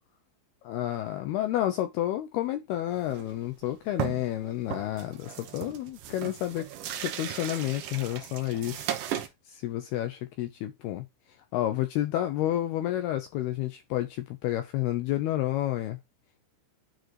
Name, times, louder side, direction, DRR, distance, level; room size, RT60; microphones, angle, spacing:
voice 1, 0.6-6.7 7.0-8.9 9.5-11.1 11.5-16.0, left 13 dB, 80° left, 2.4 m, -30 dB
sound 1, 3.0-3.3 3.6-3.7 4.0-4.4 4.7-9.3, right 11 dB, 90° right, 1.8 m, -36 dB
10.5 x 4.9 x 3.0 m
omnidirectional pair, 5.4 m